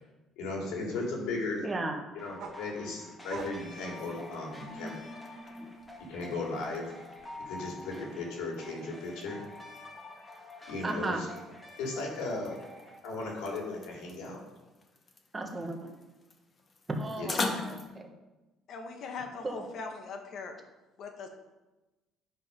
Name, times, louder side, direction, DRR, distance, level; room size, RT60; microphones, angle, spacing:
voice 1, 0.4-1.6 2.1-4.9 6.1-6.9 7.4-9.4 10.7-11.3 11.8-12.6 13.0-14.4 17.2-17.5, left 3 dB, 85° left, -1 dB, 2.8 m, -36 dB
voice 2, 1.6-2.0 4.7-5.7 10.8-11.2 15.3-16.0 16.9-18.1 19.4-19.6, right 2 dB, 20° right, 3 dB, 1.2 m, -36 dB
sound 1, 2.2-13.0, left 2 dB, 15° left, 1.9 m, -48 dB
sound 2, 2.4-5.0 5.4-7.4, right 4 dB, 65° right, 1.4 m, -47 dB
sound 3, 3.0-17.9, left 3 dB, 30° left, 1.1 m, -44 dB
voice 3, 18.7-20.6 21.0-21.3, left 4 dB, 55° left, 4 dB, 1.4 m, -40 dB
10.0 x 5.4 x 5.3 m, 1.1 s
cardioid pair, 130°, 0 cm